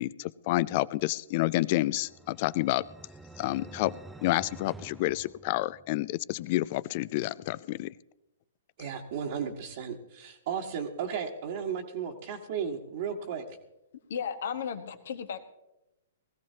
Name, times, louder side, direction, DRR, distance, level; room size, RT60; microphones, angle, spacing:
voice 1, 0.0-2.9 3.4-4.0 4.2-7.9, left 17 dB, 45° left, 20 dB, 0.4 m, -29 dB
sound 1, 1.5-6.1, right 2 dB, 5° right, 0.6 m, -49 dB
voice 2, 8.8-13.6, right 7 dB, 50° right, -3 dB, 1.6 m, -35 dB
voice 3, 14.1-15.4, left 7 dB, 60° left, 8 dB, 1.4 m, -34 dB
20.0 x 15.5 x 2.8 m, 0.91 s
figure-of-eight pair, 115°, 0 cm